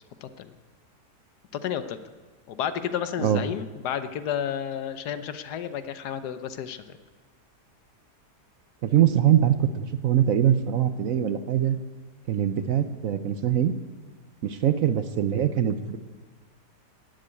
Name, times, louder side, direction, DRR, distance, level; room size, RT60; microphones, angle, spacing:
voice 1, 0.2-0.5 1.5-2.0 2.5-7.0, left 9 dB, 75° left, 11 dB, 1.3 m, -31 dB
voice 2, 8.8-11.8 12.3-13.7 14.4-16.0, right 10 dB, 65° right, 11 dB, 0.9 m, -23 dB
15.5 x 7.8 x 9.2 m, 1.4 s
omnidirectional pair, 1.8 m